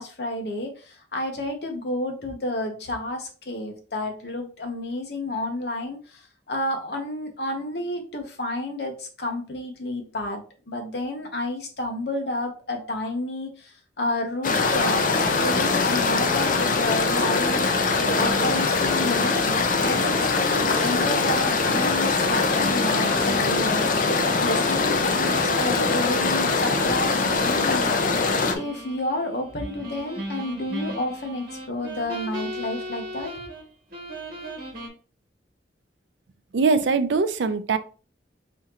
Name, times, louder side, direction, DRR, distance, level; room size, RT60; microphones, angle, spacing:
voice 1, 0.0-24.1 24.4-27.9 28.5-33.3, left 1 dB, 65° left, 3 dB, 1.0 m, -30 dB
sound 1, 14.4-28.5, left 4 dB, 50° left, 0.6 m, -22 dB
sound 2, 18.2-24.9 25.3-25.5 25.9-26.0 26.9-33.6 33.9-34.9, right 1 dB, 50° right, 1.4 m, -38 dB
voice 2, 36.5-37.8, right 4 dB, 85° right, 10 dB, 0.5 m, -22 dB
4.2 x 3.7 x 2.9 m, 0.38 s
head